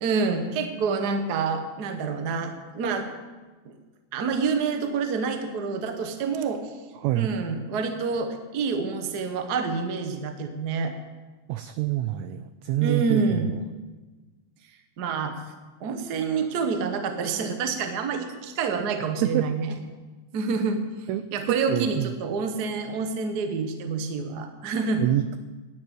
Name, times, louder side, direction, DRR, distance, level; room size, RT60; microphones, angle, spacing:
voice 1, 0.0-3.1 4.1-6.7 7.1-10.9 12.8-13.5 15.0-15.4 15.8-19.7 20.3-20.8 21.3-25.0, right 4 dB, 70° right, 7 dB, 0.9 m, -27 dB
voice 2, 11.5-13.6 19.2-19.5 21.1-22.1 25.0-25.4, right 14 dB, 85° right, 12 dB, 1.6 m, -26 dB
11.5 x 7.7 x 9.2 m, 1.3 s
omnidirectional pair, 3.7 m